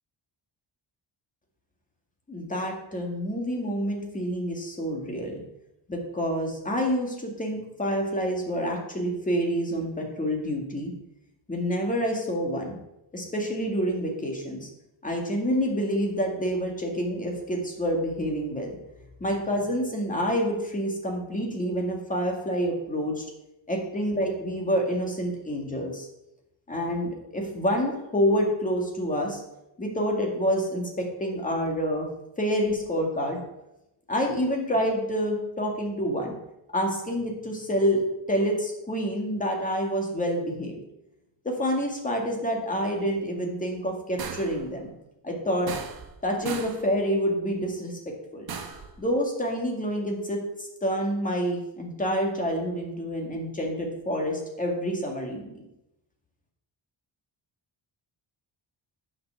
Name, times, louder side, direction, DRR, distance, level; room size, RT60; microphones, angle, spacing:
voice 1, 2.3-5.4 5.9-10.9 11.5-12.8 13.1-14.7 15.0-18.8 19.2-23.2 23.7-26.1 26.7-29.4 29.8-32.1 32.4-33.4 34.1-36.4 36.7-40.8 41.4-44.9 45.2-45.7 46.2-48.5 49.0-55.7, equal, 15° left, 1 dB, 2.0 m, -28 dB
sound 1, 44.2-44.6 45.7-46.2 46.5-46.9 48.5-48.9, right 6 dB, 50° right, 1.3 m, -36 dB
9.4 x 6.0 x 6.9 m, 0.89 s
wide cardioid pair, 175°, 47 cm